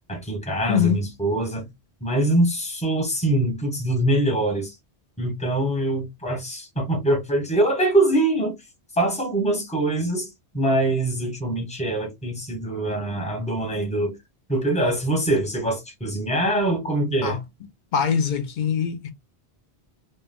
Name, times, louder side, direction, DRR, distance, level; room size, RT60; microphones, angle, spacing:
voice 1, 0.1-1.7 2.0-4.7 5.2-8.5 9.0-10.3 10.5-14.2 14.5-17.4, right 1 dB, 5° left, 0.8 m, -23 dB
voice 2, 0.7-1.0 17.2-17.4 17.9-19.1, left 7 dB, 60° left, 0.6 m, -23 dB
2.3 x 2.1 x 3.4 m
omnidirectional pair, 1.1 m